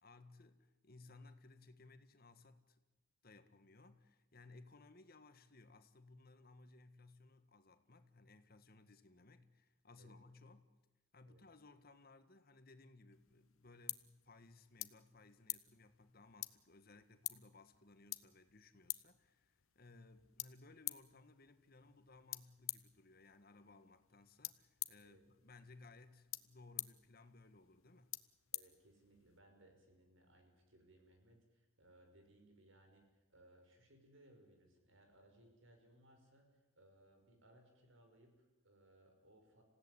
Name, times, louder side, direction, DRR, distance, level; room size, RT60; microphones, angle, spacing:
voice 1, 0.0-2.8 3.2-10.7 11.1-28.2, left 3 dB, 45° left, 10 dB, 1.6 m, -62 dB
sound 1, 13.1-29.4, left 17 dB, 80° left, 0.9 m, -50 dB
voice 2, 28.5-39.6, right 1 dB, 70° right, 4 dB, 5.8 m, -66 dB
27.0 x 16.5 x 10.0 m, 1.0 s
head